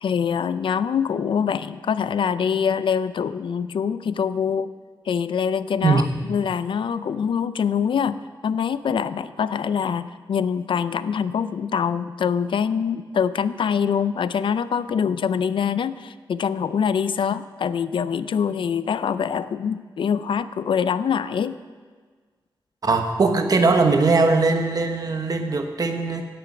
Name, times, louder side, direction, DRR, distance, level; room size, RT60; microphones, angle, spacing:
voice 1, 0.0-4.7 5.1-21.6, left 7 dB, 85° left, 15 dB, 0.4 m, -24 dB
voice 2, 5.8-6.2 22.8-26.2, right 3 dB, 45° right, 6 dB, 1.1 m, -20 dB
16.5 x 6.9 x 6.0 m, 1.5 s
wide cardioid pair, 165°, 8 cm